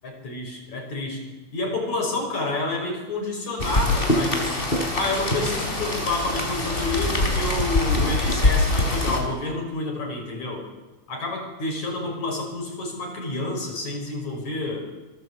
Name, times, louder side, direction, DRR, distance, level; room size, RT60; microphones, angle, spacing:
voice 1, 0.0-4.6 4.9-10.7 11.1-14.8, left 2 dB, 70° left, 2 dB, 7.1 m, -29 dB
Rain, 3.6-9.2, left 2 dB, 15° left, 4.6 m, -23 dB
27.0 x 20.0 x 8.5 m, 1.1 s
omnidirectional pair, 3.5 m